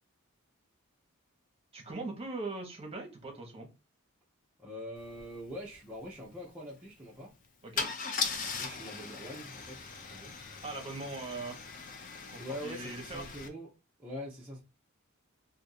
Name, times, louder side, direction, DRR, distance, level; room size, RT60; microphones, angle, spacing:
voice 1, 1.7-3.7 7.6-7.9 10.6-11.6 12.3-13.3, right 3 dB, 25° right, 1.0 m, -40 dB
voice 2, 4.6-7.3 8.6-10.3 12.4-13.7 14.0-14.6, equal, 5° right, 0.6 m, -44 dB
Car / Engine starting / Idling, 5.1-5.2 5.5-5.8 7.8-13.5, left 5 dB, 35° left, 0.5 m, -39 dB
2.7 x 2.5 x 4.0 m
head